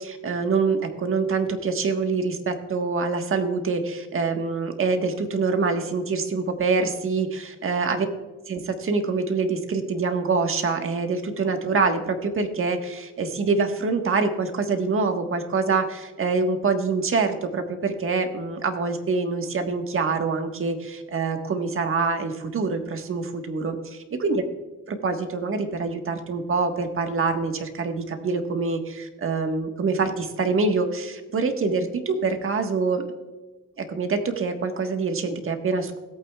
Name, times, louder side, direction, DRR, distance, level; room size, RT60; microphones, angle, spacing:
voice 1, 0.0-8.1 8.5-24.4 24.9-33.0 33.8-36.0, right 4 dB, 45° right, 5 dB, 1.5 m, -25 dB
17.0 x 8.9 x 2.4 m, 1.2 s
cardioid pair, 90°, 30 cm